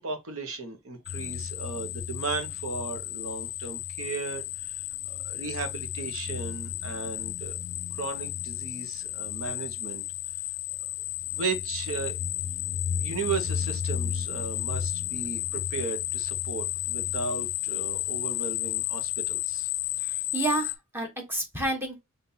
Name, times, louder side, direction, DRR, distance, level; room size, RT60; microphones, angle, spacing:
voice 1, 0.0-7.6 7.9-10.0 11.3-12.2 13.0-19.7, right 4 dB, 70° right, 1.1 m, -36 dB
sound 1, 1.1-20.7, left 11 dB, 65° left, 0.4 m, -32 dB
voice 2, 20.0-22.0, right 2 dB, 10° right, 1.2 m, -30 dB
5.5 x 2.7 x 2.8 m
head